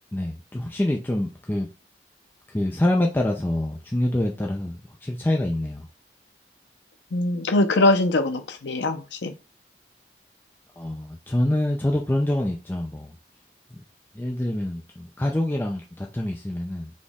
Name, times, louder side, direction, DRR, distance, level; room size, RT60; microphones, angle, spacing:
voice 1, 0.1-1.7 2.5-5.9 10.8-13.1 13.7-13.8 14.1-16.9, left 1 dB, 10° left, 0.4 m, -26 dB
voice 2, 7.1-9.3, left 2 dB, 85° left, 0.6 m, -22 dB
4.2 x 3.0 x 3.5 m
head